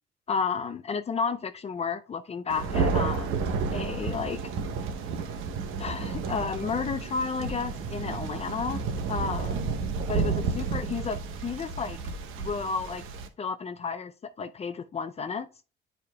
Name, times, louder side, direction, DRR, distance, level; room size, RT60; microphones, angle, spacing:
voice 1, 0.3-3.4 3.7-4.4 5.8-9.7 10.1-12.0 12.4-13.0 13.4-15.5, left 5 dB, 30° left, 0.5 m, -32 dB
Thunder, 2.5-13.3, right 5 dB, 75° right, 0.8 m, -31 dB
8.7 x 5.0 x 2.3 m
cardioid pair, 95°, 21 cm